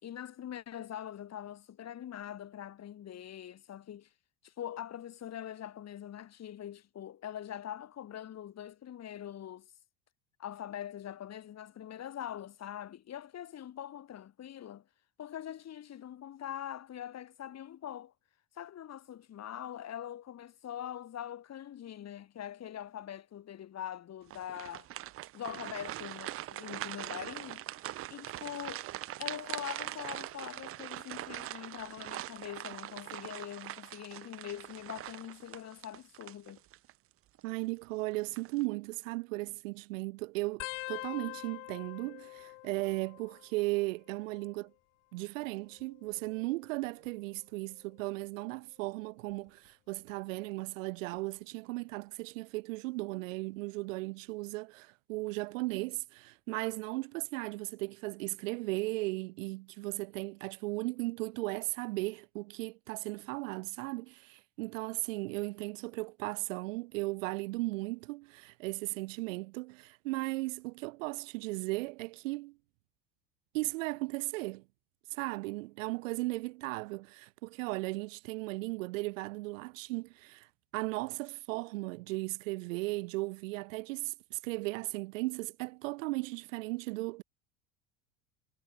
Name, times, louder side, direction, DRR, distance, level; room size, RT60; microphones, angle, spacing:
voice 1, 0.0-4.1 4.4-9.7 10.4-14.9 15.2-18.1 18.5-24.9 25.3-28.9 29.2-36.6, left 10 dB, 40° left, 4.2 m, -43 dB
sound 1, 24.3-36.9 37.4-37.5 38.1-38.6, right 15 dB, 35° right, 0.6 m, -42 dB
voice 2, 37.4-44.7 45.1-72.6 73.5-74.6 75.1-80.5 80.7-87.2, right 23 dB, 75° right, 2.7 m, -36 dB
sound 2, 40.6-43.8 44.1-44.7 45.6-47.1 47.7-48.1 49.3-49.7 51.2-51.3, left 28 dB, 70° left, 1.3 m, -46 dB
hypercardioid pair, 85°, 39 cm